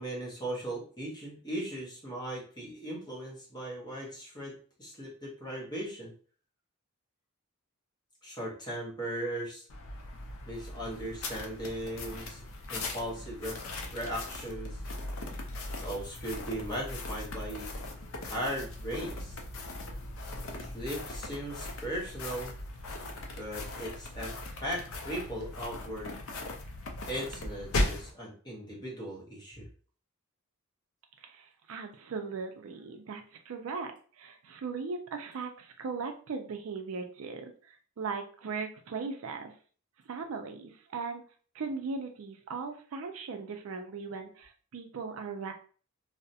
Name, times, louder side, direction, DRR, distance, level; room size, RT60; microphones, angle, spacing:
voice 1, 0.0-6.1 8.2-9.7 10.5-12.4 12.7-13.6 13.9-14.8 15.8-17.7 18.2-19.4 20.4-22.5 23.4-26.1 27.1-29.7, right 1 dB, 20° left, -5 dB, 0.8 m, -38 dB
sound 1, 9.7-28.1, left 2 dB, 65° left, 0.4 m, -38 dB
voice 2, 31.2-39.5 40.1-41.2 41.5-45.5, right 4 dB, 70° right, 5 dB, 0.4 m, -38 dB
2.3 x 2.0 x 2.6 m, 0.41 s
head